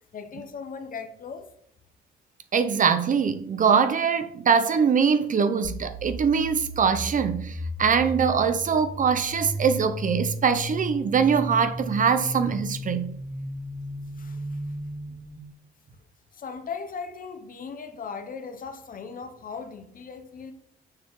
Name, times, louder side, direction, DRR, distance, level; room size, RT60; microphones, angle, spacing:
voice 1, 0.1-1.5 14.2-14.7 16.3-20.5, left 5 dB, 45° left, 0.8 m, -38 dB
voice 2, 2.5-13.1, right 6 dB, 40° right, 0.6 m, -23 dB
sound 1, 5.6-15.4, equal, 5° right, 0.9 m, -35 dB
6.6 x 5.5 x 3.1 m
cardioid pair, 90°, 20 cm